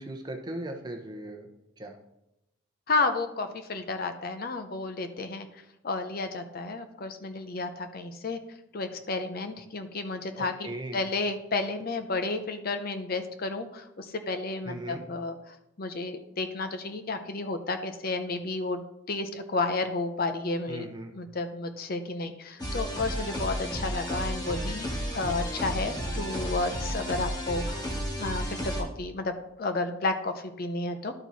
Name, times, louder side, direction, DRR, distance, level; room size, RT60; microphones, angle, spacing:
voice 1, 0.0-1.5 1.8-1.9 10.6-11.0 14.6-15.0 20.7-21.1, right 1 dB, 20° right, 2 dB, 1.0 m, -38 dB
voice 2, 2.9-5.5 5.8-8.4 8.7-27.8 28.1-31.1, left 3 dB, 45° left, 7 dB, 0.6 m, -32 dB
sound 1, 22.6-28.8, equal, 20° left, 1.5 m, -32 dB
12.0 x 4.5 x 4.1 m, 0.87 s
head